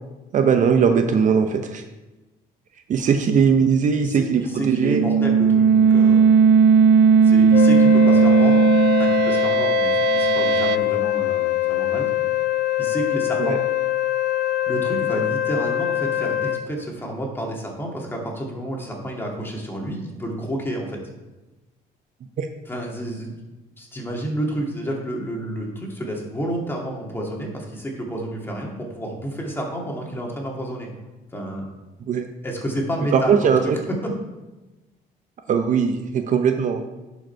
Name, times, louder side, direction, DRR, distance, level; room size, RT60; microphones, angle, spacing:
voice 1, 0.3-1.8 2.9-4.4 4.7-5.0 13.4-13.6 22.4-22.5 32.1-32.3 33.1-33.8 35.5-36.8, right 6 dB, 50° right, 6 dB, 0.7 m, -19 dB
voice 2, 4.0-6.2 7.2-8.7 9.0-12.1 12.8-13.6 14.7-21.0 22.7-23.3 23.8-30.9 31.3-31.6 32.4-34.1, right 1 dB, 15° left, -1 dB, 2.2 m, -30 dB
sound 1, 4.5-10.8, right 6 dB, 85° right, 0.4 m, -16 dB
Wind instrument woodwind instrument, 7.5-16.7, left 16 dB, 90° left, 0.6 m, -23 dB
11.0 x 5.2 x 4.5 m, 1.1 s
cardioid pair, 110°, 17 cm